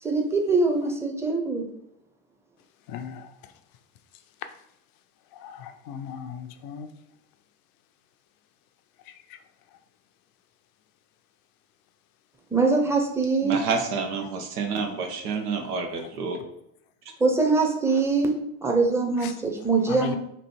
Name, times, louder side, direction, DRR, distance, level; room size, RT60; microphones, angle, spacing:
voice 1, 0.0-1.7 12.5-13.6 17.2-18.4 18.6-20.2, right 3 dB, 5° right, 1 dB, 0.8 m, -23 dB
voice 2, 2.9-3.3 5.4-6.9 19.9-20.2, left 7 dB, 50° left, 8 dB, 0.6 m, -36 dB
voice 3, 13.4-16.4, right 5 dB, 80° right, 3 dB, 0.8 m, -28 dB
3.1 x 2.7 x 4.3 m, 0.77 s
hypercardioid pair, 65°, 45 cm